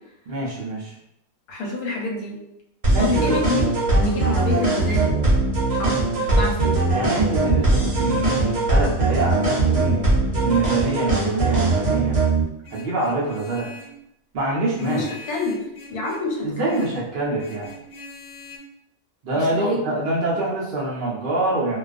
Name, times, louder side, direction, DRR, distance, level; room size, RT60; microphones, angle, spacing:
voice 1, 0.3-1.0 2.9-3.4 6.9-10.0 10.4-12.2 12.7-13.7 14.3-15.0 16.4-17.7 19.2-21.8, right 2 dB, 75° right, -4 dB, 0.4 m, -25 dB
voice 2, 1.5-2.4 3.0-5.1 5.7-6.8 14.8-15.6 15.9-16.8 19.3-20.0, left 2 dB, 85° left, -1 dB, 1.1 m, -27 dB
sound 1, 2.8-12.4, right 2 dB, 40° right, 0.7 m, -20 dB
Vehicle horn car horn honking, 12.6-14.0 14.8-16.3 16.7-17.0 17.4-18.6, left 2 dB, 65° left, 0.8 m, -43 dB
2.3 x 2.2 x 2.4 m, 0.81 s
omnidirectional pair, 1.5 m